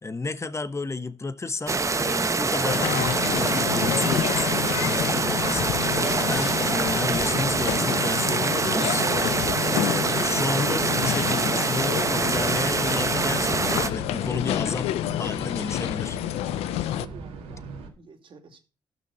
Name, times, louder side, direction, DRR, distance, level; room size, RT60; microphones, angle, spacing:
voice 1, 0.0-9.1 9.8-14.9 15.2-16.2, left 3 dB, 30° left, 1.1 m, -32 dB
sound 1, 1.7-13.9, right 4 dB, 30° right, 0.9 m, -25 dB
sound 2, 2.7-17.1, left 14 dB, 80° left, 0.5 m, -29 dB
sound 3, 12.1-17.9, right 3 dB, 85° right, 2.1 m, -39 dB
voice 2, 17.0-18.6, right 5 dB, 55° right, 2.5 m, -49 dB
12.0 x 6.1 x 5.6 m
supercardioid pair, 50°, 10 cm